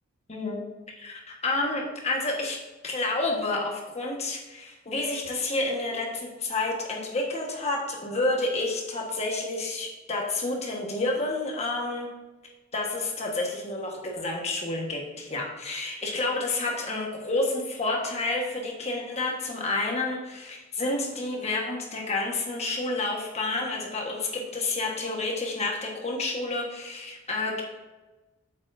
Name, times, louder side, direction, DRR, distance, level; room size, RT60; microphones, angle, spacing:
voice 1, 0.3-0.6 1.0-2.6 2.8-12.1 12.7-27.6, left 2 dB, 30° left, -1 dB, 1.4 m, -29 dB
8.3 x 7.8 x 2.7 m, 1.1 s
head